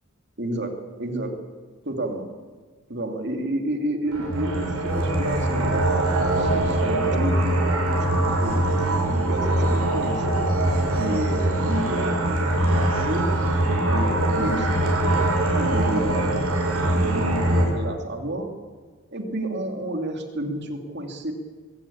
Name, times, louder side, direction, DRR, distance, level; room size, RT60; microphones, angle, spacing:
voice 1, 0.4-0.7 1.0-1.3 1.8-2.3 2.9-5.7 6.4-10.4 11.0-13.3 13.6-18.5 19.1-21.3, right 1 dB, 50° right, 4 dB, 2.8 m, -30 dB
sound 1, 4.1-17.6, right 1 dB, 80° right, 6.6 m, -22 dB
22.5 x 17.0 x 8.7 m, 1.4 s
head